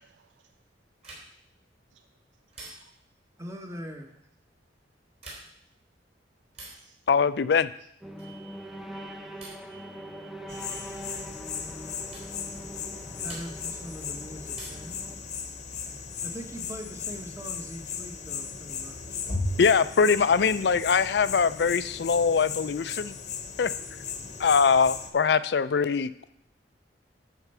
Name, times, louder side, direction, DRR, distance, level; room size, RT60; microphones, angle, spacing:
sound 1, 1.0-1.5 2.5-3.1 5.1-5.7 6.5-6.9 8.2-8.5 9.4-9.7 11.0-11.3 12.1-12.3 13.2-13.8 14.5-15.0 16.5-17.2, right 2 dB, 35° right, 3.3 m, -47 dB
voice 1, 3.4-4.2 11.9-12.1 13.2-15.0 16.2-19.3, equal, 15° right, 3 dB, 1.1 m, -41 dB
voice 2, 7.1-7.7 19.6-23.1 23.6-23.7 24.4-26.3, left 5 dB, 65° left, 15 dB, 0.4 m, -22 dB
sound 2, 8.0-15.2, right 1 dB, ahead, 0.6 m, -43 dB
voice 3, 8.2-8.7 8.9-9.4 9.7-10.2 10.5-11.0, right 9 dB, 80° right, 12 dB, 0.4 m, -53 dB
sound 3, 10.5-25.1, left 5 dB, 40° left, 0.9 m, -36 dB
11.0 x 4.5 x 6.8 m, 0.72 s
head